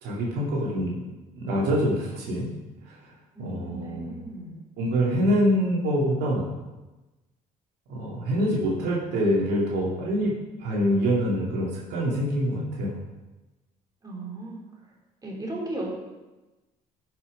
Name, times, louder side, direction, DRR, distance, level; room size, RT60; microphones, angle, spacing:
voice 1, 0.0-1.0 1.3-2.5 2.8-3.1 3.4-4.1 4.8-6.5 7.9-13.0, equal, 80° right, -4 dB, 2.3 m, -25 dB
voice 2, 3.3-4.6 14.0-14.6 15.2-15.9, right 1 dB, 20° right, -3 dB, 3.3 m, -35 dB
11.5 x 5.8 x 5.1 m, 1.1 s
cardioid pair, 110°, 17 cm